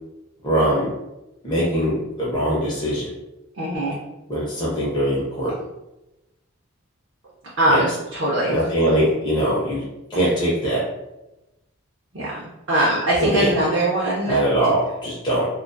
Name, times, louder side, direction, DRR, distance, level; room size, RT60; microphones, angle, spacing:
voice 1, 0.4-0.9 1.4-3.1 4.3-5.6 7.7-7.8 8.5-9.8 10.1-10.9 13.2-13.7 14.2-15.5, right 1 dB, 20° left, -6 dB, 0.5 m, -21 dB
voice 2, 3.6-4.0 7.6-8.5 12.1-12.3 12.7-14.4, right 1 dB, 60° right, -7 dB, 0.5 m, -21 dB
2.3 x 2.3 x 2.5 m, 0.96 s
head